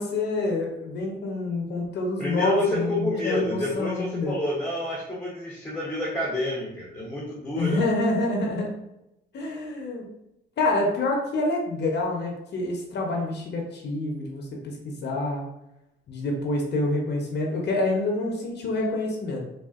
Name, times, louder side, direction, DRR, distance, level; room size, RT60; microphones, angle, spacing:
voice 1, 0.0-4.3 7.6-8.7 9.3-10.0 10.6-15.4 16.1-19.4, left 2 dB, 60° left, 0 dB, 0.7 m, -27 dB
voice 2, 2.2-7.8, left 1 dB, 10° left, -5 dB, 0.8 m, -29 dB
3.4 x 2.4 x 2.4 m, 0.87 s
cardioid pair, 90°, 20 cm